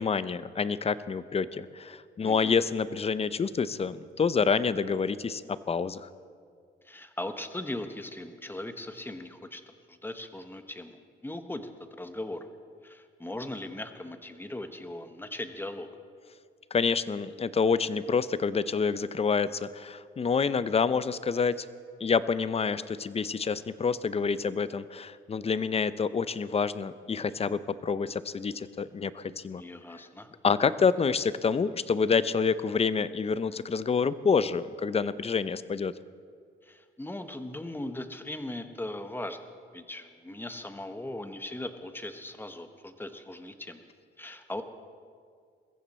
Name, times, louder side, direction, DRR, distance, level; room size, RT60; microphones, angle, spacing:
voice 1, 0.0-5.4 5.7-6.1 16.7-21.5 22.0-29.6 30.4-35.9, left 5 dB, 30° left, 15 dB, 0.6 m, -27 dB
voice 2, 2.2-2.6 6.8-12.5 12.8-15.9 29.6-30.3 36.6-43.8 44.2-44.6, left 1 dB, 10° left, 8 dB, 1.3 m, -39 dB
21.5 x 15.0 x 4.3 m, 2.1 s
cardioid pair, 90°, 20 cm